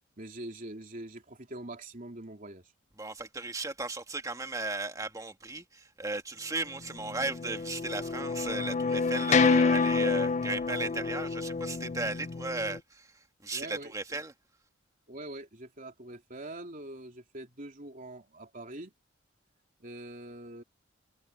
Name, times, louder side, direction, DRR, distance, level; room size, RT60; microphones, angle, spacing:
voice 1, 0.2-2.7 13.5-13.9 15.1-18.9 19.8-20.6, right 1 dB, 45° right, 3.4 m, -43 dB
voice 2, 3.0-14.3, right 2 dB, 15° right, 2.1 m, -36 dB
sound 1, 7.0-12.8, left 4 dB, 35° left, 0.4 m, -28 dB
head